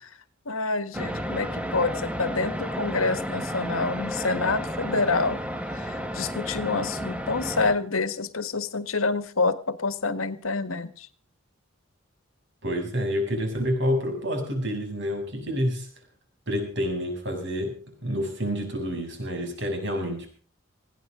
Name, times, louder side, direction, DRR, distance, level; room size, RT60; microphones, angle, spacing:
voice 1, 0.4-5.4 5.7-11.1, left 3 dB, 80° left, 12 dB, 1.6 m, -27 dB
sound 1, 0.9-7.7, equal, 5° right, 1.5 m, -32 dB
voice 2, 12.6-15.9 16.5-20.3, equal, 60° right, 4 dB, 7.2 m, -28 dB
20.0 x 16.5 x 3.8 m, 0.38 s
head